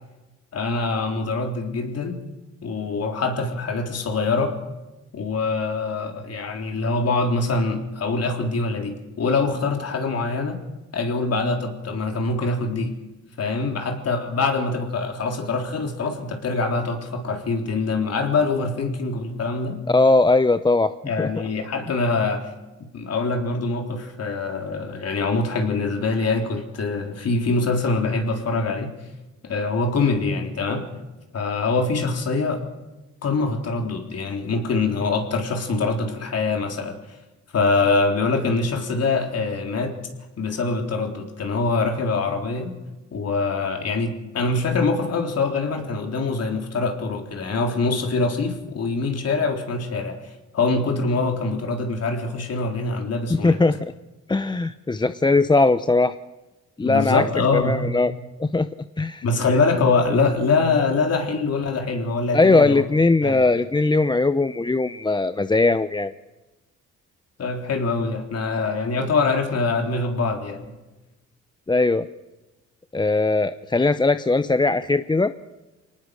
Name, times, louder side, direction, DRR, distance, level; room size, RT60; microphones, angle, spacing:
voice 1, 0.5-2.2 2.6-4.5 5.1-10.6 10.9-12.9 13.4-19.8 21.1-22.5 22.8-28.9 29.4-30.8 31.3-32.6 33.2-37.0 37.5-39.9 40.4-42.7 43.1-50.2 50.5-53.6 56.8-58.0 59.2-62.8 63.2-63.5 67.4-70.6, left 3 dB, 55° left, 4 dB, 3.9 m, -24 dB
voice 2, 19.9-21.3 53.3-53.9 54.3-56.2 56.8-57.3 57.5-58.1 58.4-58.7 59.0-59.2 62.3-66.1 71.7-72.1 72.9-75.3, left 3 dB, 15° left, 12 dB, 0.7 m, -19 dB
24.0 x 19.0 x 6.5 m, 1.1 s
cardioid pair, 90°, 30 cm